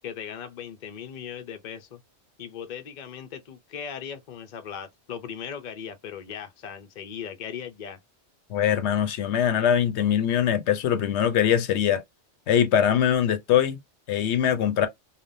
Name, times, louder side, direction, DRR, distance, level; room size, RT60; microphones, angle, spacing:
voice 1, 0.0-2.0 2.4-8.0, left 8 dB, 50° left, 0.6 m, -38 dB
voice 2, 8.5-12.0 12.5-13.8 14.1-14.9, left 9 dB, 75° left, 0.9 m, -22 dB
3.4 x 2.2 x 2.6 m
omnidirectional pair, 1.2 m